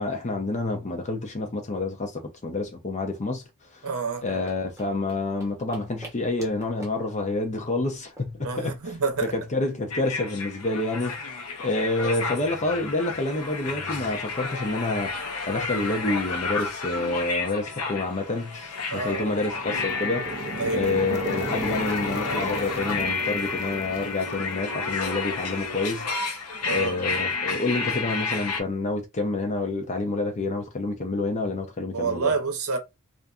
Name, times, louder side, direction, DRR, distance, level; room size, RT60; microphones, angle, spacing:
voice 1, 0.0-3.4 3.7-3.9 4.2-9.0 9.2-11.2 11.6-20.3 20.7-26.1 26.7-32.3, left 2 dB, 35° left, 0.5 m, -28 dB
voice 2, 3.8-4.3 8.4-9.3 18.9-19.4 20.6-20.9 26.6-27.1 31.9-32.8, right 4 dB, 75° right, 0.7 m, -28 dB
sound 1, 4.1-9.2, right 2 dB, 15° right, 0.8 m, -47 dB
sound 2, 9.9-28.6, left 4 dB, 80° left, 0.7 m, -31 dB
sound 3, 19.3-25.2, right 2 dB, 30° right, 0.4 m, -36 dB
2.5 x 2.4 x 2.3 m
head